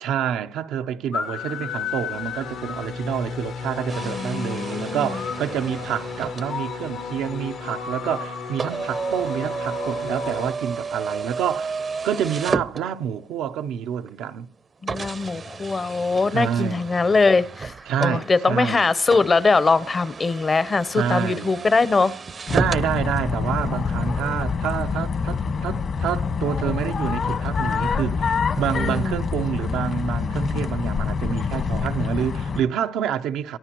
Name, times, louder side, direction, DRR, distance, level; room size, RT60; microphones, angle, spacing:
voice 1, 0.0-14.5 16.3-16.8 17.9-18.9 20.9-21.6 22.5-33.6, right 9 dB, 90° right, 0.6 m, -28 dB
sound 1, 1.1-10.5, left 6 dB, 80° left, 1.7 m, -33 dB
sound 2, 3.9-13.4 14.1-14.2 14.9-22.9, right 5 dB, 40° right, 0.6 m, -33 dB
voice 2, 4.0-5.2 14.8-17.7 18.0-22.2 28.8-29.2, left 4 dB, 35° left, 0.7 m, -21 dB
sound 3, 22.5-32.6, left 5 dB, 55° left, 1.5 m, -26 dB
27.5 x 13.5 x 3.0 m
cardioid pair, 90°, 0 cm